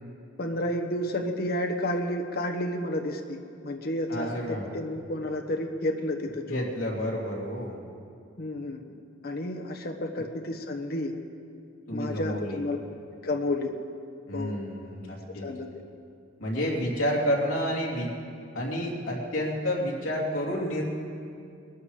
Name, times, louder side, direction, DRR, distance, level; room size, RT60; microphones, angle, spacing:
voice 1, 0.4-6.6 8.4-8.8 9.2-11.1 11.9-12.8 13.2-13.7 14.3-14.6 15.4-15.7, left 1 dB, 50° left, 4 dB, 1.1 m, -31 dB
voice 2, 4.1-4.7 6.5-7.8 11.9-12.6 14.3-15.5 16.4-18.1 18.5-20.8, equal, 75° left, -3 dB, 2.9 m, -30 dB
20.5 x 13.0 x 4.9 m, 2.4 s
head